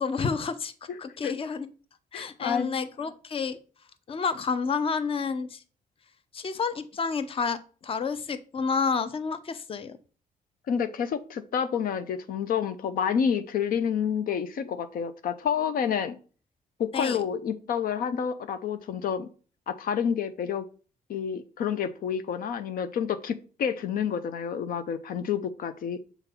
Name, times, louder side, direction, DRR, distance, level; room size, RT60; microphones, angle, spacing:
voice 1, 0.0-1.7 2.1-3.6 4.1-5.6 6.3-10.0 16.9-17.2, left 5 dB, 40° left, 12 dB, 0.6 m, -30 dB
voice 2, 2.1-2.7 10.7-16.2 16.8-19.3 19.7-20.6 21.1-26.0, left 7 dB, 75° left, 11 dB, 0.6 m, -29 dB
6.9 x 3.9 x 4.4 m, 0.37 s
cardioid pair, 120°, 15 cm